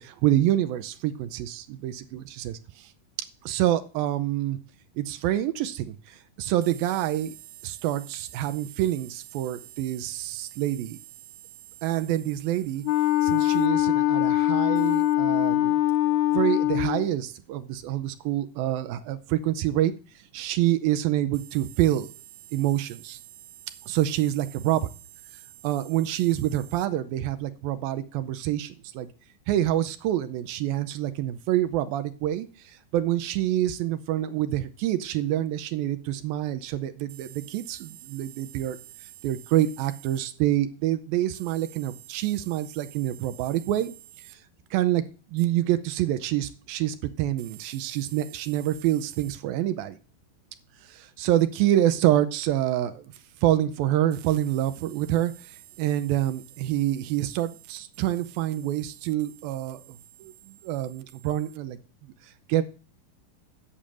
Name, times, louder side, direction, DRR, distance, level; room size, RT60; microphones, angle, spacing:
voice 1, 0.0-2.9 3.4-4.6 5.0-7.3 7.6-11.0 11.8-12.8 13.2-15.8 16.3-19.9 20.3-22.1 22.5-23.2 23.9-24.9 25.6-29.1 29.5-38.8 39.2-43.9 44.3-44.4 44.7-45.0 45.3-50.0 50.9-53.0 53.4-59.8 60.2-61.8 62.5-62.6, right 13 dB, 80° right, 2.4 m, -27 dB
Wind instrument woodwind instrument, 12.8-17.1, left 14 dB, 90° left, 2.6 m, -23 dB
8.6 x 6.9 x 7.6 m
omnidirectional pair, 4.3 m